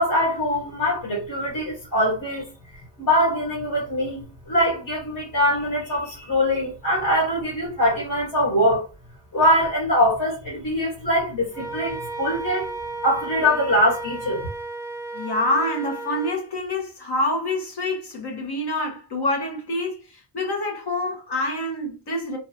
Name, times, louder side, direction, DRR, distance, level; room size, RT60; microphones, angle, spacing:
voice 1, 0.0-2.4 3.0-8.9 9.3-12.7 13.0-14.5, left 1 dB, 45° left, 1.6 m, -22 dB
Wind instrument woodwind instrument, 11.5-16.4, right 3 dB, 5° left, 0.9 m, -34 dB
voice 2, 15.1-22.4, left 1 dB, 60° left, 1.3 m, -26 dB
3.1 x 2.7 x 2.8 m
wide cardioid pair, 135°, 44 cm